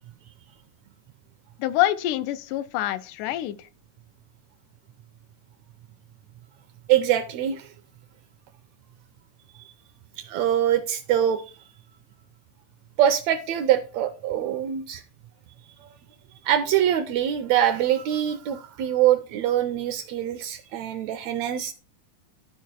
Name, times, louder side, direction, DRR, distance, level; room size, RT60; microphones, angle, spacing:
voice 1, 1.6-3.7, left 14 dB, 85° left, 2.1 m, -26 dB
voice 2, 6.9-7.7 9.6-9.7 10.2-11.5 13.0-15.0 16.5-21.7, right 11 dB, 80° right, 1.7 m, -24 dB
12.0 x 4.5 x 4.6 m
omnidirectional pair, 3.6 m